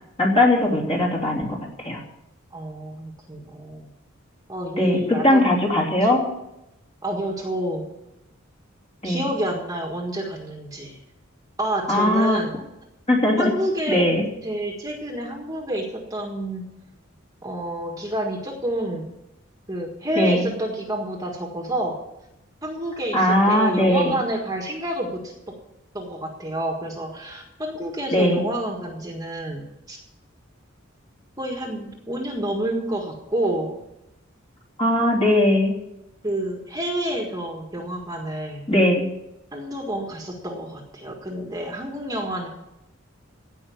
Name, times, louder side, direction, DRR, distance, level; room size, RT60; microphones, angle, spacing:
voice 1, 0.2-1.6 1.8-2.0 4.8-6.2 9.0-9.2 11.9-12.4 13.1-13.5 13.9-14.2 20.2-20.5 23.1-24.2 28.1-28.4 34.8-35.7 38.7-39.1, left 1 dB, 30° left, -1 dB, 2.9 m, -19 dB
voice 2, 2.5-3.9 4.5-5.6 7.0-7.9 9.0-11.0 11.6-12.5 13.4-14.1 14.4-16.6 17.4-19.1 19.7-22.0 22.6-25.5 25.9-30.0 31.4-33.8 36.2-38.6 39.5-42.5, right 1 dB, 15° right, 1 dB, 1.6 m, -29 dB
16.5 x 5.7 x 9.4 m, 0.90 s
head